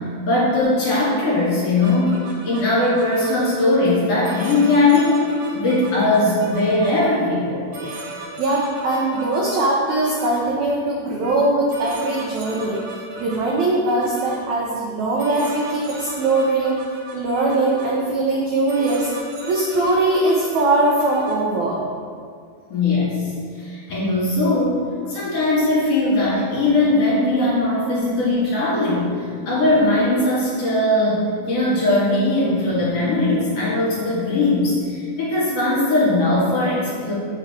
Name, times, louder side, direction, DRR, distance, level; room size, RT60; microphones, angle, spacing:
voice 1, 0.2-2.2 2.4-5.2 5.5-7.6 22.7-23.3 23.6-29.1 29.5-37.1, left 2 dB, 45° left, -8 dB, 2.7 m, -19 dB
sound 1, 1.8-3.3 4.2-6.9 7.7-10.4 11.2-11.4 11.7-14.4 15.2-17.9 18.7-21.3, right 2 dB, 65° right, 1.9 m, -36 dB
voice 2, 8.4-12.8 13.2-16.8 17.1-19.1 19.4-21.8, right 2 dB, 80° right, -4 dB, 1.6 m, -21 dB
7.0 x 5.9 x 4.4 m, 2.2 s
omnidirectional pair, 4.6 m